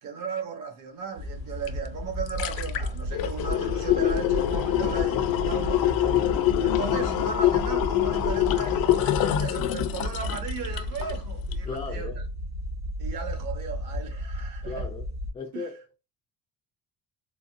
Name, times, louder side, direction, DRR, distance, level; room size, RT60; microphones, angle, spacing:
voice 1, 0.0-6.2 6.6-12.2 13.0-14.8 15.5-15.7, right 5 dB, 60° right, 1.1 m, -36 dB
sound 1, 1.1-15.3, equal, 75° right, 1.9 m, -33 dB
sound 2, 1.7-1.8 2.1-11.2 11.5-11.6, left 12 dB, 70° left, 0.6 m, -25 dB
voice 2, 11.6-12.2 14.6-15.0 15.3-16.0, left 4 dB, 15° left, 0.3 m, -36 dB
3.9 x 3.2 x 2.5 m
cardioid pair, 170°, 37 cm